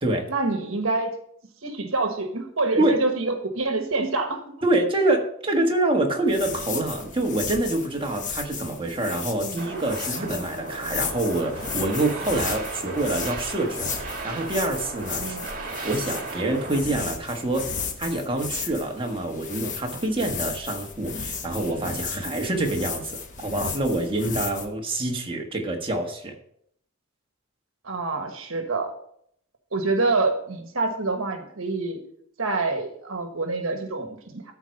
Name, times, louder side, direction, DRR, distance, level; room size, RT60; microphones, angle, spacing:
voice 1, 0.3-1.1 1.6-4.4 9.4-9.6 15.2-15.5 27.8-28.9 29.7-32.0 32.4-34.5, right 3 dB, 70° right, 5 dB, 1.4 m, -26 dB
voice 2, 4.6-15.4 15.8-26.3, right 2 dB, 25° right, 2 dB, 1.5 m, -26 dB
sound 1, 6.3-24.7, left 5 dB, 35° left, 1.0 m, -35 dB
sound 2, 9.6-16.8, right 3 dB, 45° right, 2.0 m, -36 dB
13.0 x 4.7 x 5.3 m, 0.68 s
head